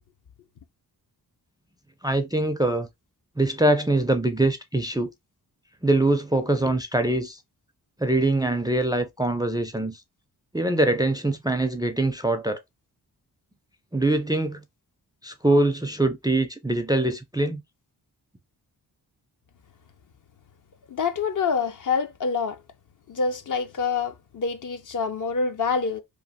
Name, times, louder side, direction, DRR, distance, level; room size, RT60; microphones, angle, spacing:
voice 1, 2.0-2.9 3.4-5.1 5.8-7.4 8.0-10.0 10.5-12.6 13.9-14.6 15.2-17.6, right 2 dB, 10° right, 0.4 m, -23 dB
voice 2, 20.9-22.6 23.1-26.0, left 5 dB, 50° left, 0.6 m, -26 dB
3.0 x 2.1 x 2.7 m
cardioid pair, 50°, 41 cm